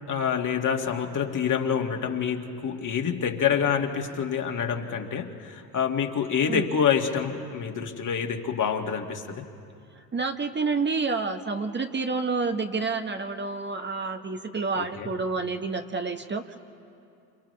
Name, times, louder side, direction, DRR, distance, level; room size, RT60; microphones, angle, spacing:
voice 1, 0.1-9.4 14.8-15.1, left 7 dB, 40° left, 3 dB, 2.1 m, -27 dB
voice 2, 10.0-16.6, right 4 dB, 20° right, 6 dB, 1.1 m, -29 dB
29.5 x 27.5 x 3.3 m, 2.6 s
hypercardioid pair, 60°, 48 cm